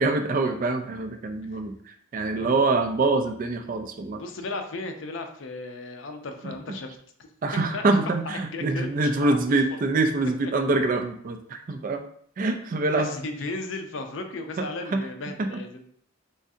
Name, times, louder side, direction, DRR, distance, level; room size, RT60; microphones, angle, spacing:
voice 1, 0.0-1.7 2.1-4.2 6.4-6.6 7.4-12.0 12.4-13.1 14.6-14.7 14.9-15.0 15.4-15.6, right 3 dB, 40° right, 6 dB, 0.3 m, -25 dB
voice 2, 4.1-6.9 7.7-7.8 8.5-9.8 10.4-10.5 12.9-15.9, left 3 dB, 65° left, 5 dB, 0.5 m, -35 dB
3.6 x 3.2 x 2.6 m, 0.62 s
head